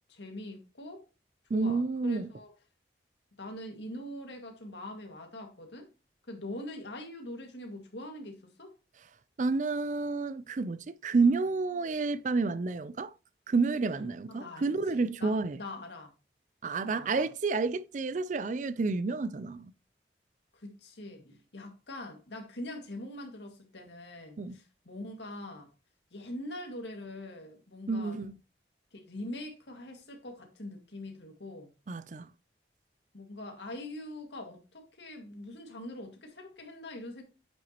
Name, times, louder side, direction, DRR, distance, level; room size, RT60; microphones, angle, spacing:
voice 1, 0.1-1.0 1.5-2.5 3.4-5.9 6.3-8.7 14.3-16.1 16.8-17.3 20.5-25.7 26.1-28.2 28.9-31.7 33.1-37.2, left 1 dB, 90° left, 2.1 m, -43 dB
voice 2, 1.5-2.3 9.4-13.1 13.5-15.6 16.6-19.7 24.4-24.6 27.9-28.4 31.9-32.3, right 4 dB, 45° right, 0.4 m, -30 dB
8.8 x 6.1 x 2.9 m
head